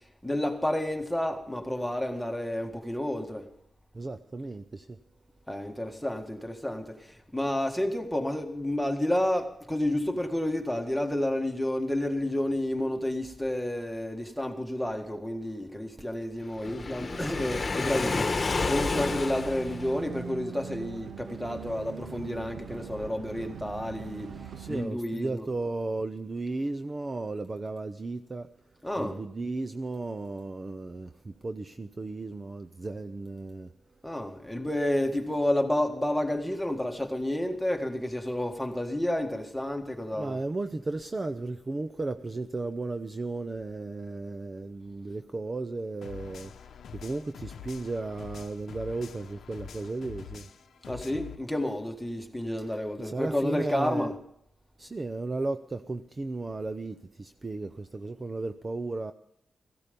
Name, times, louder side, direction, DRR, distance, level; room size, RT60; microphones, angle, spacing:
voice 1, 0.2-3.5 5.5-24.4 24.7-25.5 28.8-29.2 34.0-40.4 50.9-54.2, left 1 dB, ahead, 1.8 m, -30 dB
voice 2, 3.9-5.0 24.6-28.5 29.0-33.7 40.1-50.5 52.7-54.1 54.8-59.1, right 2 dB, 30° right, 0.6 m, -35 dB
Waves surf, 16.6-20.1, left 3 dB, 35° left, 1.3 m, -30 dB
sound 1, 18.5-24.9, right 7 dB, 70° right, 0.8 m, -42 dB
sound 2, 46.0-51.4, left 7 dB, 85° left, 0.8 m, -45 dB
16.5 x 15.0 x 5.3 m
wide cardioid pair, 110°, 0 cm